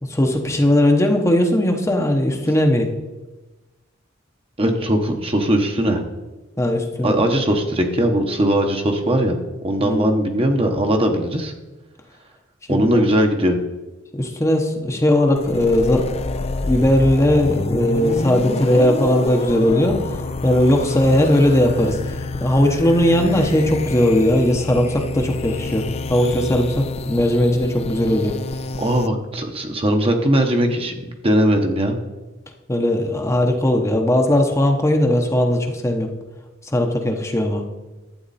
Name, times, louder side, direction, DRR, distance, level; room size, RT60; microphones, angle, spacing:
voice 1, 0.0-2.9 6.6-7.2 9.8-10.2 12.7-13.0 14.1-16.3 16.7-20.0 20.4-28.3 32.7-36.1 36.6-37.6, left 1 dB, 15° left, 2 dB, 0.9 m, -18 dB
voice 2, 4.6-6.0 7.0-9.4 9.6-11.5 12.7-13.6 28.8-30.9 31.2-32.0, right 1 dB, 30° right, 4 dB, 1.0 m, -19 dB
sound 1, 15.4-29.1, left 3 dB, 30° left, 0.4 m, -27 dB
12.0 x 8.7 x 4.2 m, 1.1 s
head